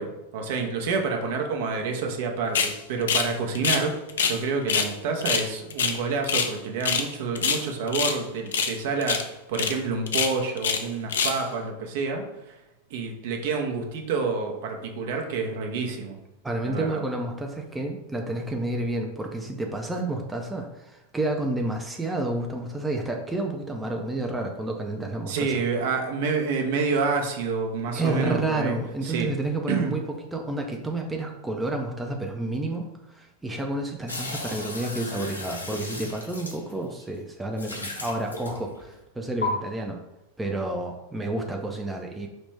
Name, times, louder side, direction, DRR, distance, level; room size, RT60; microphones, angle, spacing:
voice 1, 0.0-12.5 12.9-16.2 16.7-17.0 25.3-28.7 29.0-29.3 29.7-29.9, right 4 dB, 50° right, 3 dB, 0.8 m, -28 dB
sound 1, 2.5-2.7 3.1-3.3 3.5-4.4 4.7-4.9 5.2-6.5 6.8-7.1 7.3-8.2 8.5-8.8 9.0-9.2 9.5-9.7 10.1-10.8 11.1-11.4, left 6 dB, 65° left, 0.5 m, -25 dB
voice 2, 16.4-25.6 27.9-30.0 30.3-40.0 40.4-42.3, right 2 dB, 10° right, 1 dB, 0.5 m, -30 dB
sound 2, 34.1-37.0 37.5-38.9 39.4-39.5, left 3 dB, 80° left, 0.8 m, -35 dB
5.1 x 3.0 x 3.2 m, 0.96 s
figure-of-eight pair, 90°, 0 cm